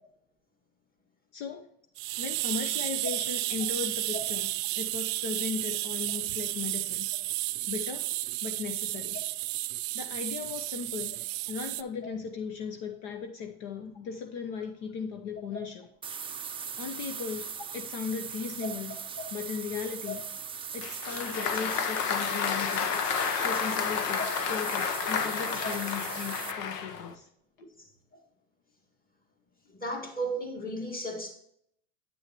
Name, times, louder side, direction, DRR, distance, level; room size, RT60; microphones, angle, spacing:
voice 1, 1.3-1.7 2.2-7.1 7.7-8.1 8.4-9.2 9.9-15.9 16.8-19.0 19.3-20.2 20.7-23.0 23.3-27.3, left 6 dB, 55° left, 5 dB, 1.0 m, -37 dB
sound 1, 2.0-11.8, right 19 dB, 60° right, 0.6 m, -32 dB
sound 2, 16.0-26.5, right 6 dB, 10° right, 0.4 m, -39 dB
Applause, 20.8-27.1, left 6 dB, 80° left, 1.1 m, -31 dB
voice 2, 27.8-28.2 29.7-31.3, right 1 dB, 20° left, 1 dB, 2.1 m, -35 dB
9.5 x 6.3 x 3.0 m, 0.73 s
hypercardioid pair, 105°, 47 cm